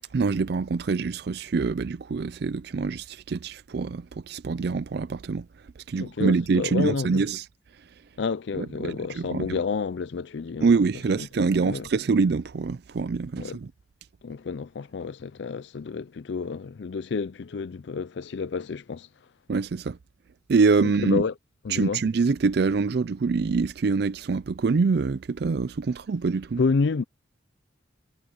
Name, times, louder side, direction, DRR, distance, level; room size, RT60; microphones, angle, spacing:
voice 1, 0.1-5.5 5.9-7.4 8.6-9.6 10.6-13.7 19.5-20.0 20.5-21.2 21.7-26.6, right 4 dB, 55° right, 0.4 m, -25 dB
voice 2, 5.9-7.2 8.2-10.7 11.2-11.3 11.6-11.9 13.4-13.6 14.2-19.1 20.8-21.3 21.6-22.0 26.6-27.0, left 4 dB, 65° left, 0.4 m, -29 dB
head